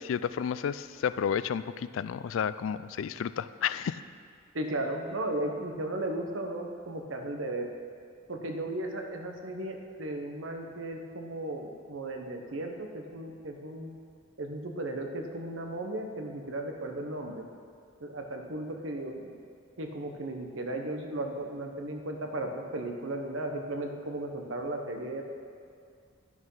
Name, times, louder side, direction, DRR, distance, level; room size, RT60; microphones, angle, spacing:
voice 1, 0.1-4.0, left 8 dB, 80° left, 15 dB, 0.3 m, -31 dB
voice 2, 4.5-7.7 8.3-13.9 14.4-17.5 18.0-19.3 19.8-25.2, right 1 dB, 85° right, 3 dB, 1.1 m, -35 dB
10.5 x 6.3 x 5.6 m, 2.3 s
head